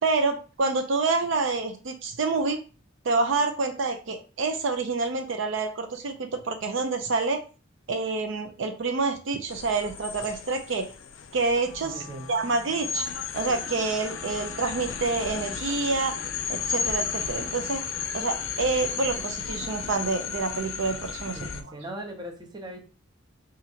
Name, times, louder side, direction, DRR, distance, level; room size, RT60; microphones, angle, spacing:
voice 1, 0.0-2.6 3.0-7.4 7.9-10.9 11.3-12.0 12.3-13.1 13.3-16.2 16.5-17.8 18.1-21.4, right 3 dB, 65° right, 6 dB, 0.5 m, -27 dB
sound 1, 9.5-21.6, left 6 dB, 75° left, 0.5 m, -34 dB
Wind instrument woodwind instrument, 11.6-18.3, left 2 dB, 35° left, 0.8 m, -49 dB
voice 2, 11.8-12.3 21.3-22.8, right 1 dB, 20° right, 3 dB, 0.6 m, -39 dB
2.9 x 2.5 x 4.2 m, 0.35 s
head